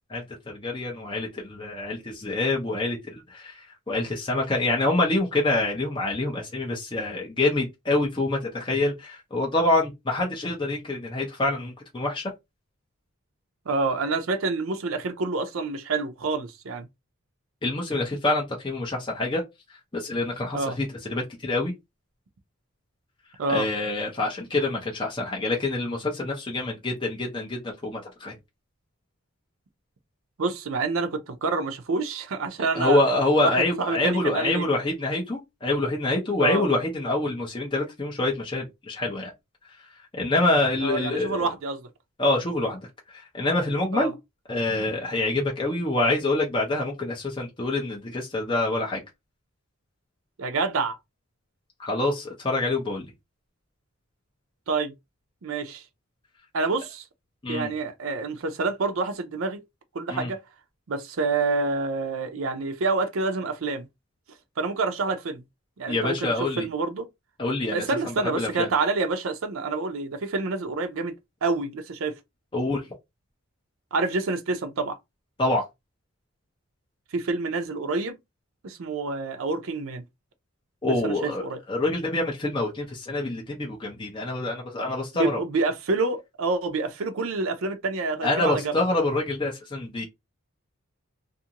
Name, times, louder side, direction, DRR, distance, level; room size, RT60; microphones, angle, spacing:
voice 1, 0.1-12.3 17.6-19.4 19.9-21.7 23.5-28.4 32.7-39.3 40.1-41.5 42.2-42.9 43.1-44.1 44.5-49.0 51.8-53.1 57.4-57.7 60.1-60.3 65.9-66.7 67.4-68.7 72.5-72.8 75.4-75.6 80.8-81.4 81.7-85.4 88.2-90.1, left 2 dB, 20° left, 0.6 m, -26 dB
voice 2, 13.7-16.9 20.5-20.8 23.4-23.7 30.4-33.0 33.4-34.7 36.4-36.7 40.8-41.9 43.9-44.1 50.4-51.0 54.7-54.9 55.4-55.8 56.5-57.0 57.5-59.6 59.9-60.4 60.9-63.9 64.6-65.4 65.8-67.1 67.7-71.1 71.4-72.1 73.9-75.0 77.1-78.2 78.6-80.0 80.9-81.6 85.1-88.7, right 3 dB, 60° right, 0.5 m, -27 dB
2.5 x 2.5 x 2.8 m
head